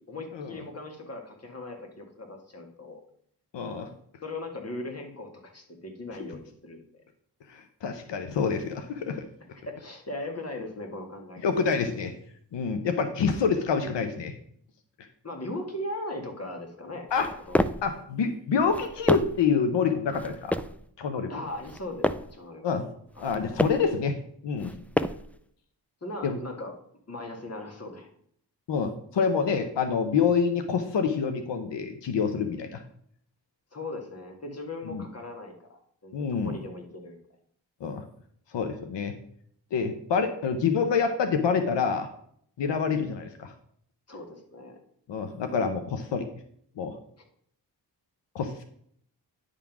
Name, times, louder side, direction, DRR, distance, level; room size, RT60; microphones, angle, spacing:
voice 1, 0.1-3.0 3.8-3.9 4.2-7.0 9.7-11.4 15.2-17.1 17.5-17.7 21.3-22.8 26.0-26.7 27.1-28.1 33.7-37.2 44.1-44.8, left 1 dB, 35° left, 3 dB, 1.8 m, -38 dB
voice 2, 3.5-3.9 7.5-9.2 11.4-12.1 12.5-14.3 17.1-17.3 17.8-20.6 21.0-21.3 22.6-22.9 23.2-24.2 24.4-24.7 26.2-26.4 28.7-32.8 34.9-35.0 36.1-36.6 37.8-38.0 38.5-39.1 39.7-42.1 42.6-43.5 45.1-46.3 46.8-47.0 48.3-48.6, left 5 dB, 85° left, 7 dB, 0.8 m, -27 dB
sound 1, 17.1-17.9 18.6-19.5 20.1-20.8 21.5-22.4 23.1-23.9 24.6-25.4, left 1 dB, 5° left, 0.3 m, -29 dB
9.9 x 3.7 x 5.9 m, 0.66 s
cardioid pair, 70°, 42 cm